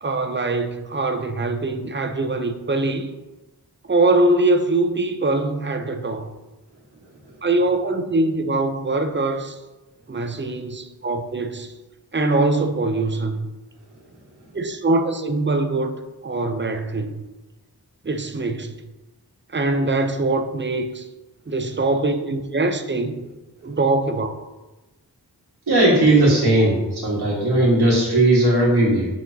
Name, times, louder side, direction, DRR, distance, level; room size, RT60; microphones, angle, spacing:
voice 1, 0.0-3.1 3.9-6.3 7.4-9.6 10.1-11.7 12.1-13.5 14.5-17.2 18.0-18.7 19.5-21.0 21.5-23.2 23.6-24.4, right 2 dB, 30° right, 0.6 m, -22 dB
voice 2, 25.7-29.1, right 1 dB, 90° right, 1.6 m, -17 dB
7.0 x 5.7 x 2.8 m
wide cardioid pair, 60°, 38 cm